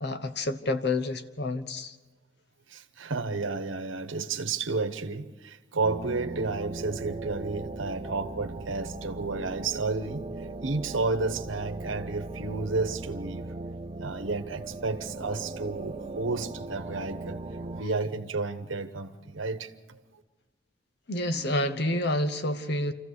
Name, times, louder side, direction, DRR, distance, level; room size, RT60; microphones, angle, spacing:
voice 1, 0.0-2.0 21.1-22.9, left 1 dB, 55° left, 1.0 m, -29 dB
voice 2, 2.7-10.2 10.6-13.5 14.0-17.4 17.7-20.0, right 3 dB, 80° right, 1.1 m, -31 dB
sound 1, 5.8-17.8, right 2 dB, 30° right, 0.6 m, -39 dB
27.0 x 15.0 x 6.6 m
head